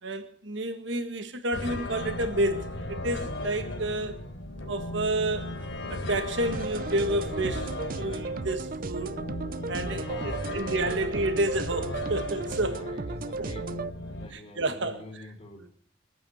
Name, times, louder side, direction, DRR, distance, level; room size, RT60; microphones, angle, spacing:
voice 1, 0.0-4.1 4.7-5.5 5.9-9.2 9.7-12.8 13.4-13.5 14.3-15.3, right 1 dB, 65° right, 1.7 m, -30 dB
sound 1, 1.5-14.3, left 1 dB, 70° left, 3.6 m, -36 dB
sound 2, 6.5-13.9, right 3 dB, 45° right, 0.6 m, -35 dB
voice 2, 9.9-10.5 10.8-11.3 12.5-13.8 14.1-15.7, left 2 dB, 35° left, 2.5 m, -45 dB
23.0 x 8.8 x 5.7 m
head